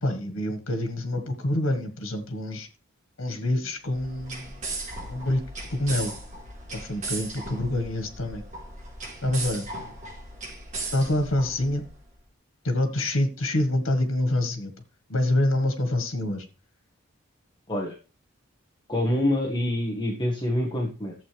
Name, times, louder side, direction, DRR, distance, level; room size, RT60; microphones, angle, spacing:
voice 1, 0.0-2.7 3.2-4.5 5.1-5.4 5.7-6.1 6.7-8.4 9.2-9.6 10.9-11.9 12.6-14.7 15.1-16.4, left 1 dB, 85° left, 6 dB, 1.7 m, -26 dB
sound 1, 3.8-12.0, right 2 dB, 40° right, 4.5 m, -37 dB
voice 2, 18.9-21.1, left 1 dB, 20° left, -2 dB, 1.6 m, -26 dB
12.5 x 7.7 x 3.4 m, 0.34 s
head